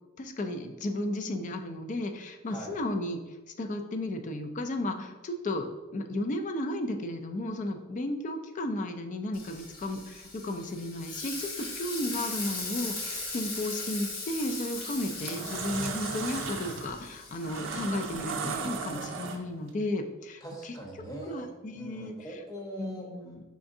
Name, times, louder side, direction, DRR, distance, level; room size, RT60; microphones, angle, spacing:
voice 1, 0.2-3.2 3.6-20.7 21.3-22.1 22.8-23.4, left 1 dB, 40° left, 7 dB, 0.4 m, -34 dB
voice 2, 2.5-2.8 20.4-23.1, right 1 dB, 15° left, -1 dB, 0.8 m, -42 dB
Frying (food), 9.3-19.1, left 3 dB, 75° left, 1.1 m, -39 dB
sound 1, 14.3-14.5 15.0-19.7, right 5 dB, 65° right, 0.4 m, -36 dB
4.9 x 3.4 x 2.6 m, 1.1 s
head